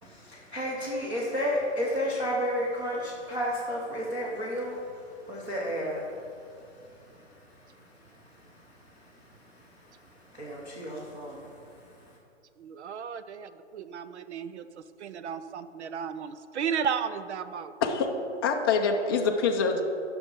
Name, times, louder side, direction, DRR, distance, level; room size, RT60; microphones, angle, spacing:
voice 1, 0.0-4.8 5.2-6.1 7.1-7.2 8.4-8.7 9.3-9.7 10.3-11.5, equal, 15° right, -6 dB, 0.9 m, -32 dB
voice 2, 12.6-17.7, right 7 dB, 65° right, 12 dB, 0.6 m, -34 dB
voice 3, 17.8-18.1 18.4-19.8, left 5 dB, 20° left, 2 dB, 0.5 m, -25 dB
11.0 x 6.2 x 5.5 m, 2.6 s
hypercardioid pair, 150°, 36 cm